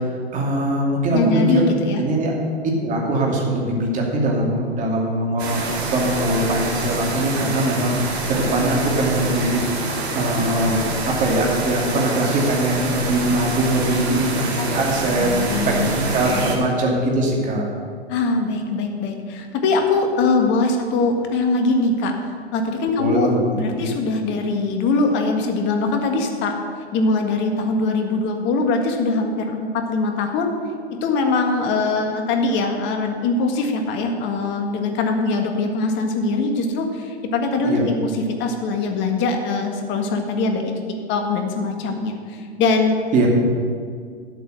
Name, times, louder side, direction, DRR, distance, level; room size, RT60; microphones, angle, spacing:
voice 1, 0.3-1.7 2.0-2.3 2.8-9.6 10.1-15.3 15.7-17.6 23.0-23.4 23.7-23.9 37.7-37.8 43.1-43.3, right 1 dB, 25° right, -1 dB, 2.7 m, -21 dB
voice 2, 1.1-2.0 14.6-14.7 15.2-15.9 16.3-16.5 18.1-22.1 22.5-26.6 26.9-30.5 31.0-40.7 41.1-43.0, left 3 dB, 35° left, 4 dB, 1.8 m, -22 dB
sound 1, 5.4-16.6, right 2 dB, 70° right, 2.5 m, -26 dB
11.0 x 8.3 x 6.6 m, 2.1 s
hypercardioid pair, 120°, 33 cm